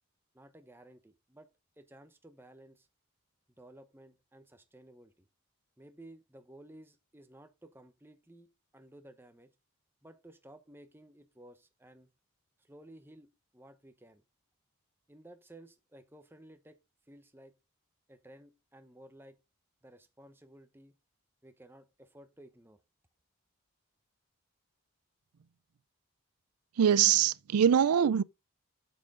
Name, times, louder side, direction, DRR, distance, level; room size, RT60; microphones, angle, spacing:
voice 1, 0.3-1.5 1.8-2.9 3.6-5.3 5.8-9.5 10.0-12.1 12.6-14.2 15.1-16.8 17.1-17.5 18.1-19.4 19.8-21.0 21.4-22.8, right 1 dB, 10° right, 1.0 m, -55 dB
voice 2, 26.8-28.2, right 8 dB, 90° right, 0.4 m, -23 dB
8.8 x 7.7 x 3.7 m
head